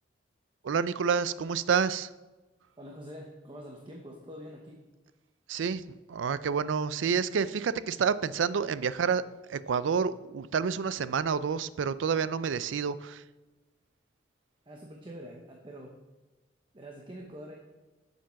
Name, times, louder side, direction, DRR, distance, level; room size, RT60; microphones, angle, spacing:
voice 1, 0.6-2.1 5.5-5.8 6.1-9.2 9.5-13.2, right 6 dB, 85° right, 15 dB, 0.4 m, -29 dB
voice 2, 2.8-4.8 14.7-16.0 16.7-17.5, equal, 25° right, 1 dB, 0.9 m, -45 dB
7.4 x 7.0 x 5.8 m, 1.1 s
head